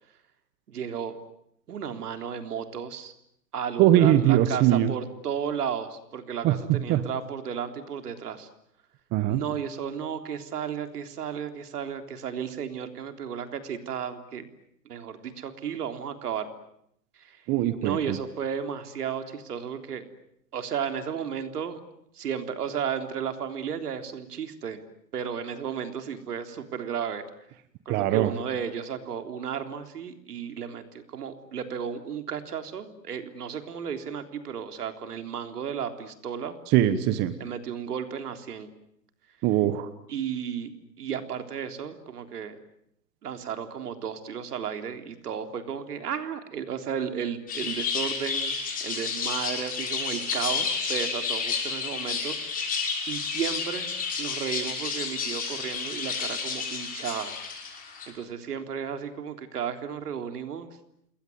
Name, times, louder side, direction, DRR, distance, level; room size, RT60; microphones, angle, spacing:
voice 1, 0.7-1.2 1.7-3.1 3.5-8.5 9.3-14.5 14.9-16.5 17.2-17.4 17.8-20.1 20.5-21.8 22.1-24.8 25.1-27.2 27.9-36.6 37.4-38.7 40.1-40.7 41.0-42.6 43.2-52.4 53.1-53.9 54.2-57.4 58.1-60.7, right 8 dB, 65° right, 7 dB, 3.6 m, -33 dB
voice 2, 3.8-4.9 6.4-6.5 6.9-7.0 9.1-9.4 17.5-18.0 27.9-28.3 36.7-37.3 39.4-39.9, right 12 dB, 20° right, 12 dB, 1.2 m, -21 dB
sound 1, 47.5-58.1, left 5 dB, 15° left, 6.3 m, -31 dB
28.5 x 21.5 x 9.4 m, 0.74 s
hypercardioid pair, 140°, 50 cm